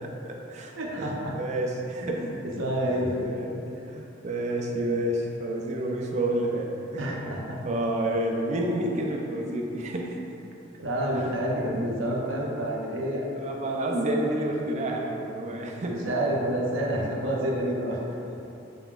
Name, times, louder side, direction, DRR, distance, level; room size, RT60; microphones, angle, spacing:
voice 1, 0.0-2.3 2.9-7.0 7.6-10.2 11.1-11.4 13.4-16.0 18.3-18.4, right 1 dB, 35° right, 0 dB, 0.3 m, -30 dB
voice 2, 0.8-1.3 2.0-3.3 7.0-7.6 10.8-13.6 15.8-18.0, right 1 dB, 75° right, -3 dB, 0.6 m, -29 dB
3.8 x 3.7 x 2.3 m, 2.8 s
head